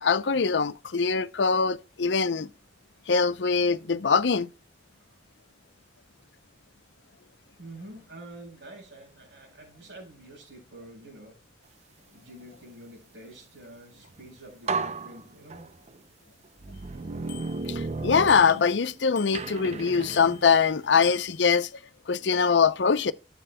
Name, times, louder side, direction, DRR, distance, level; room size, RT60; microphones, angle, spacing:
voice 1, 0.0-2.5 3.1-4.5 17.7-21.7 22.1-23.1, left 5 dB, 80° left, 0.6 m, -23 dB
voice 2, 7.6-11.4 12.1-15.7, right 1 dB, 75° right, 5.7 m, -47 dB
sound 1, 14.1-14.2 14.7-16.0 16.6-18.9 19.3-21.2, right 3 dB, 35° right, 0.5 m, -34 dB
Bicycle bell, 16.7-16.8 17.3-17.9 18.3-18.8 19.2-19.8 20.1-20.6 21.0-21.7, left 11 dB, 50° left, 1.1 m, -45 dB
13.5 x 8.3 x 2.2 m
head